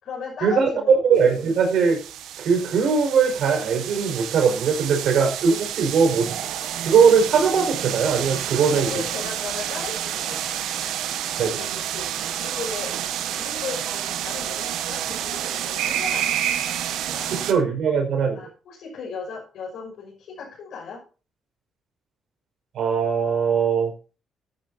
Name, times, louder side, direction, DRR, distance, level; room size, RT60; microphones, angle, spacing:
voice 1, 0.0-0.9 8.7-10.9 11.4-12.1 12.4-13.0 13.3-17.4 18.3-21.0, left 5 dB, 75° left, -4 dB, 6.2 m, -37 dB
voice 2, 1.0-2.0 2.4-6.4 6.9-8.9 11.4-11.8 17.3-18.5 22.7-23.9, right 6 dB, 70° right, 3 dB, 5.4 m, -20 dB
sound 1, 1.2-17.5, right 10 dB, 85° right, 1.4 m, -29 dB
15.0 x 10.5 x 2.8 m, 0.34 s
cardioid pair, 90°, 0 cm